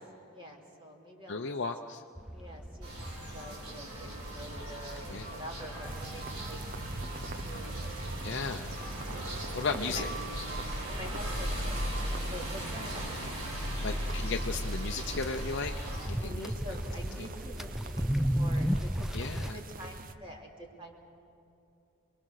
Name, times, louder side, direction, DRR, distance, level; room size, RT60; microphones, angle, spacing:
voice 1, 0.3-1.5 2.3-8.3 9.7-10.1 10.9-13.4 16.2-21.0, right 1 dB, 25° right, 0 dB, 2.8 m, -47 dB
voice 2, 1.3-2.0 5.1-5.3 8.2-8.7 9.5-10.1 13.8-16.5 17.2-17.3 19.1-19.6, left 4 dB, 55° left, 4 dB, 0.7 m, -35 dB
sound 1, 2.2-19.5, equal, ahead, 0.4 m, -38 dB
sound 2, 2.8-16.1, equal, 85° right, 5.2 m, -37 dB
sound 3, 5.8-20.1, right 3 dB, 40° right, 0.7 m, -44 dB
27.0 x 22.0 x 6.5 m, 2.8 s
head